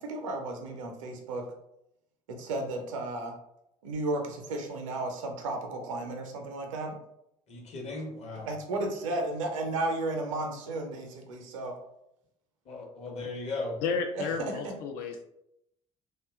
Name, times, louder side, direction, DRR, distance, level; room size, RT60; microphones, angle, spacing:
voice 1, 0.0-1.5 2.3-3.3 3.8-7.0 8.5-11.8 14.2-14.7, right 2 dB, 70° right, 3 dB, 0.5 m, -33 dB
voice 2, 7.5-8.5 12.6-13.8, left 2 dB, 40° left, 0 dB, 0.8 m, -37 dB
voice 3, 13.8-15.2, left 5 dB, 55° left, 4 dB, 0.4 m, -32 dB
2.7 x 2.2 x 2.3 m, 0.80 s
figure-of-eight pair, 55°, 17 cm